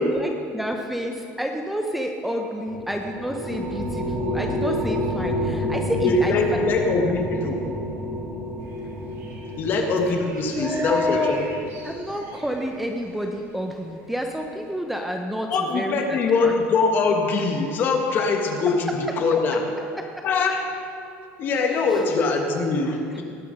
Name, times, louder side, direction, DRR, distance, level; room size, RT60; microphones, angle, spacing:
voice 1, 0.0-6.3 10.6-11.4 11.8-16.5 20.0-20.2 21.9-22.0 23.1-23.2, equal, 5° right, 3 dB, 0.6 m, -29 dB
sound 1, 2.7-12.4, equal, 30° right, 2.8 m, -29 dB
voice 2, 6.0-7.7 9.6-11.4 15.5-19.7 20.2-20.7 21.4-23.2, left 4 dB, 40° left, 3 dB, 1.5 m, -22 dB
sound 2, 8.6-14.8, right 2 dB, 50° right, 2.5 m, -46 dB
19.0 x 7.6 x 5.4 m, 2.5 s
cardioid pair, 165°, 5 cm